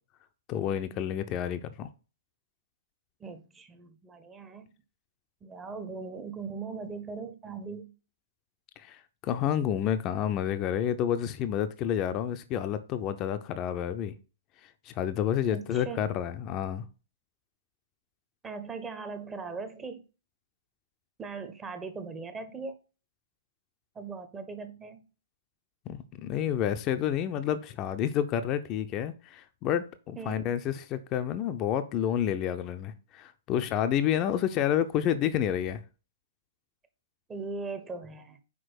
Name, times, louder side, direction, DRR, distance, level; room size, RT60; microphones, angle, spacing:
voice 1, 0.5-1.9 8.8-14.1 14.9-16.8 25.9-35.8, left 10 dB, 30° left, 0.5 m, -29 dB
voice 2, 3.2-4.7 5.4-7.9 15.5-16.1 18.4-20.1 21.2-22.8 23.9-25.1 30.2-30.5 34.4-34.5 37.3-38.4, right 4 dB, 15° right, 0.8 m, -39 dB
6.0 x 4.7 x 6.1 m
figure-of-eight pair, 110°, 0 cm